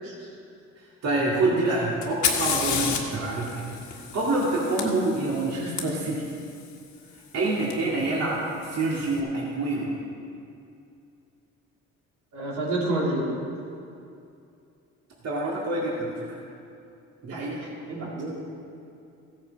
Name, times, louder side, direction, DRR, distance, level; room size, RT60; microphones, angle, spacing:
voice 1, 1.0-6.3 7.3-10.0 15.2-16.4 17.2-17.6, right 2 dB, 60° right, -4 dB, 2.1 m, -27 dB
Fire, 2.0-5.8 7.7-7.8 8.6-9.0, left 6 dB, 75° left, 1.7 m, -30 dB
voice 2, 12.3-13.3 17.3-18.4, right 2 dB, 85° right, -5 dB, 3.3 m, -30 dB
15.0 x 8.8 x 5.2 m, 2.6 s
cardioid pair, 90°, 30 cm